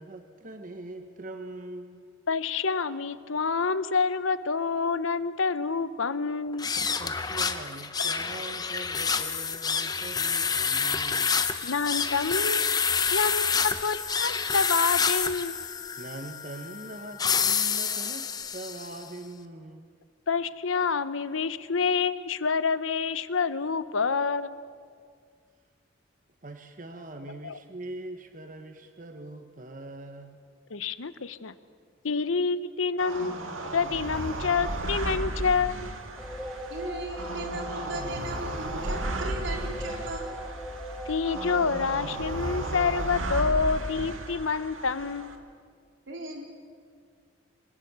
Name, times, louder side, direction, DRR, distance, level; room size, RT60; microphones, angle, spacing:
voice 1, 0.0-2.0 7.0-11.4 15.9-19.9 26.4-30.4, right 2 dB, 40° right, 7 dB, 1.0 m, -42 dB
voice 2, 2.3-6.7 11.6-12.6 13.1-15.6 20.3-24.5 27.3-27.6 30.7-31.5 32.0-36.0 41.1-45.3, left 5 dB, 90° left, 14 dB, 0.9 m, -28 dB
sound 1, 6.5-19.0, left 6 dB, 20° left, 0.9 m, -28 dB
sound 2, 33.0-45.4, right 1 dB, 90° right, 2.1 m, -35 dB
sound 3, 36.2-43.0, equal, ahead, 1.7 m, -39 dB
voice 3, 36.7-40.3 46.1-46.4, right 1 dB, 75° right, 2 dB, 3.8 m, -37 dB
24.5 x 18.5 x 8.1 m, 2.1 s
head